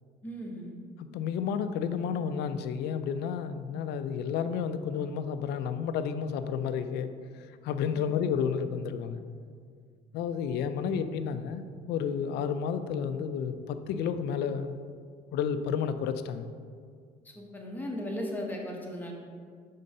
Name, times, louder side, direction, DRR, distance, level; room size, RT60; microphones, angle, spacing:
voice 1, 0.2-0.7 7.9-8.3 17.2-19.1, equal, 10° left, -1 dB, 1.1 m, -37 dB
voice 2, 1.0-9.2 10.1-14.8 15.3-16.5, left 7 dB, 80° left, 10 dB, 0.4 m, -31 dB
5.3 x 3.7 x 5.4 m, 2.1 s
cardioid pair, 110°, 17 cm